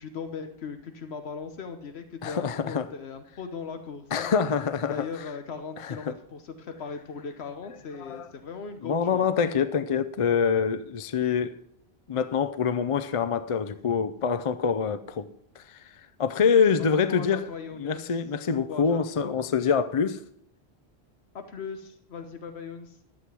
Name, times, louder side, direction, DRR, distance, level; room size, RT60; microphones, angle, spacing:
voice 1, 0.0-4.3 4.9-9.3 16.9-18.0 18.5-19.4 21.3-23.0, left 5 dB, 80° left, 1.2 m, -39 dB
voice 2, 2.2-2.9 4.1-5.1 5.8-6.0 8.0-8.3 8.8-11.5 12.1-15.3 15.6-15.8 16.2-17.4 17.8-20.2, left 6 dB, 45° left, 0.5 m, -25 dB
11.5 x 7.8 x 6.0 m
omnidirectional pair, 1.1 m